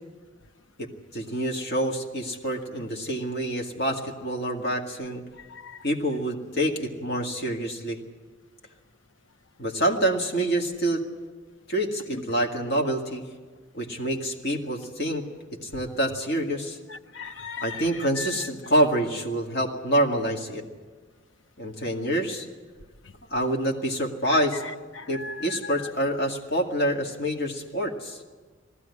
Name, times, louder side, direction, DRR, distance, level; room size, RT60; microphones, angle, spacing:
voice 1, 1.1-5.2 5.8-8.0 9.6-11.0 11.7-13.3 13.7-15.2 15.6-16.8 17.6-20.6 21.6-22.5 23.3-24.6 25.1-28.2, right 1 dB, 55° left, 0 dB, 2.2 m, -27 dB
voice 2, 5.4-5.8 12.1-12.2 16.9-17.9 18.2-18.4 25.0-25.9, left 4 dB, 85° left, 10 dB, 0.8 m, -38 dB
20.0 x 15.5 x 9.8 m, 1.4 s
head